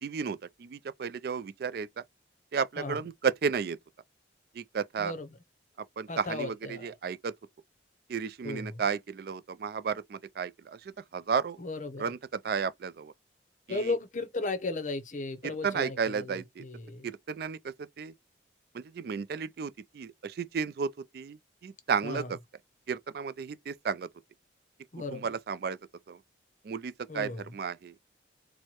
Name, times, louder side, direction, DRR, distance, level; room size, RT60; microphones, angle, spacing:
voice 1, 0.0-1.9 2.5-3.8 4.5-5.1 6.0-7.3 8.1-11.6 12.0-13.1 13.7-13.9 15.6-16.6 17.0-18.1 18.7-22.4 22.9-24.1 25.1-25.8 26.1-26.2 26.6-27.9, right 6 dB, 55° right, 0.3 m, -33 dB
voice 2, 5.0-5.3 6.1-6.9 8.4-8.8 11.6-12.1 13.7-17.1 22.0-22.3 24.9-25.3 27.1-27.5, left 3 dB, 40° left, 0.7 m, -35 dB
4.4 x 2.1 x 2.9 m
head